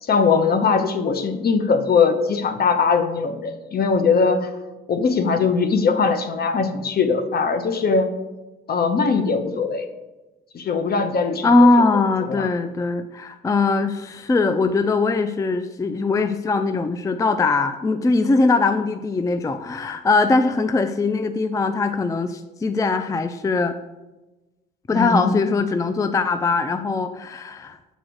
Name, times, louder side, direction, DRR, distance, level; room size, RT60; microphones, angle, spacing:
voice 1, 0.0-4.5 4.9-8.1 8.7-9.9 10.5-11.7 12.3-12.5 24.9-25.4, left 5 dB, 50° left, 8 dB, 0.9 m, -20 dB
voice 2, 11.4-23.7 24.9-27.8, left 3 dB, 15° left, 9 dB, 0.4 m, -21 dB
6.3 x 4.0 x 6.2 m, 1.1 s
cardioid pair, 90°, 20 cm